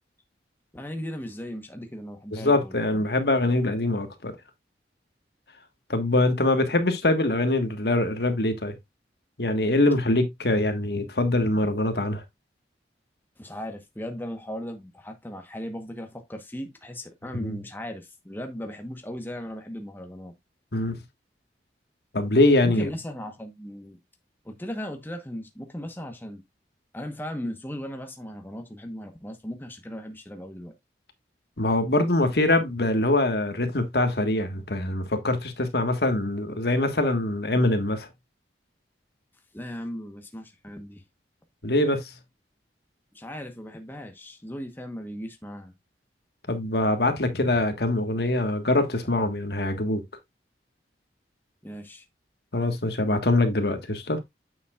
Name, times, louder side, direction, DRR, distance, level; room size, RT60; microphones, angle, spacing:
voice 1, 0.7-3.0 13.4-20.3 22.6-24.0 24.4-26.4 26.9-30.7 39.5-41.0 43.1-45.7 51.6-52.0, equal, 10° left, 1.1 m, -37 dB
voice 2, 2.3-4.3 5.9-8.7 9.4-12.2 17.4-17.6 20.7-21.0 22.1-22.9 31.6-38.1 41.6-42.1 46.5-50.0 52.5-54.2, left 2 dB, 65° left, 1.6 m, -23 dB
9.0 x 7.2 x 2.4 m
head